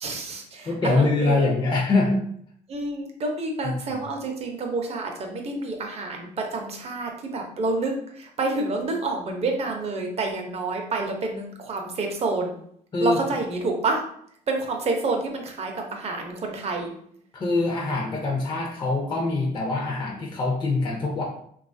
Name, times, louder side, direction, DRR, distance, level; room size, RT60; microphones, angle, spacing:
voice 1, 0.0-1.5 2.7-12.5 13.0-14.0 14.5-16.9, right 3 dB, 40° right, 2 dB, 0.6 m, -28 dB
voice 2, 0.6-2.2 3.6-4.0 12.9-13.2 17.3-21.2, left 3 dB, 25° left, -1 dB, 0.5 m, -24 dB
2.9 x 2.3 x 2.5 m, 0.66 s
cardioid pair, 110°, 17 cm